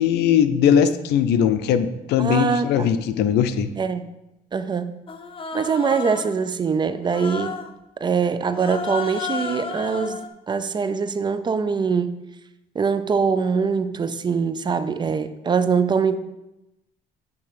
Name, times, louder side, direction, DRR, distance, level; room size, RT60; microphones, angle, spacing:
voice 1, 0.0-3.7, left 8 dB, 80° left, 11 dB, 0.6 m, -19 dB
voice 2, 2.2-2.9 3.8-4.0 4.5-4.9 5.5-7.6 8.0-12.2 12.8-16.2, right 5 dB, 25° right, 12 dB, 0.4 m, -23 dB
Human voice, 5.1-6.4 7.0-7.7 8.5-10.3, left 5 dB, 30° left, 0.6 m, -32 dB
8.4 x 3.4 x 5.1 m, 0.93 s
cardioid pair, 110°, 17 cm